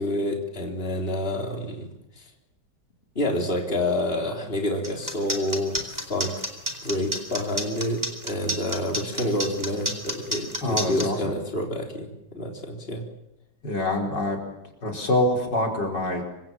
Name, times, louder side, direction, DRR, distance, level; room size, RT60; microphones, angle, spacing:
voice 1, 0.0-1.9 2.2-2.3 3.2-6.4 6.8-13.0, left 1 dB, 35° left, 1 dB, 3.9 m, -28 dB
sound 1, 4.8-11.0, equal, 10° right, 4.2 m, -29 dB
voice 2, 10.6-11.2 13.6-14.4 14.8-16.2, left 1 dB, 90° left, 1 dB, 5.6 m, -25 dB
27.0 x 25.0 x 7.5 m, 0.87 s
omnidirectional pair, 1.8 m